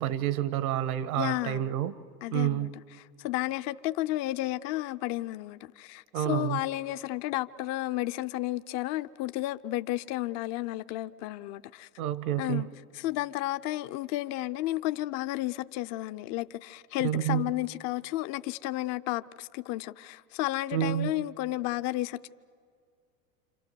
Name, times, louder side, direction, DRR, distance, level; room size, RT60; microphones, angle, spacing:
voice 1, 0.0-2.0 2.3-2.7 6.1-6.6 12.0-12.7 17.0-17.5 20.7-21.1, right 12 dB, 70° right, 1.4 m, -29 dB
voice 2, 1.2-1.7 2.2-2.7 3.2-11.9 12.4-12.7 12.9-22.3, left 16 dB, 40° left, 0.6 m, -32 dB
28.0 x 27.0 x 6.9 m
hypercardioid pair, 115°, 44 cm